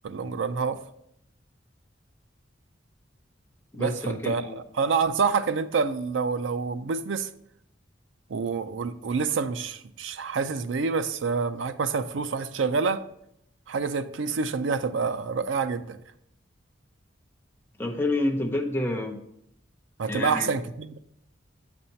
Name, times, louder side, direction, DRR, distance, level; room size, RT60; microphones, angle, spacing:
voice 1, 0.0-0.8 3.8-7.3 8.3-13.0 13.7-16.0 20.0-21.0, right 5 dB, 80° right, 12 dB, 0.4 m, -27 dB
voice 2, 3.7-4.6 17.8-19.2 20.1-20.5, left 1 dB, 10° left, 1 dB, 0.7 m, -28 dB
7.7 x 4.2 x 4.4 m, 0.75 s
head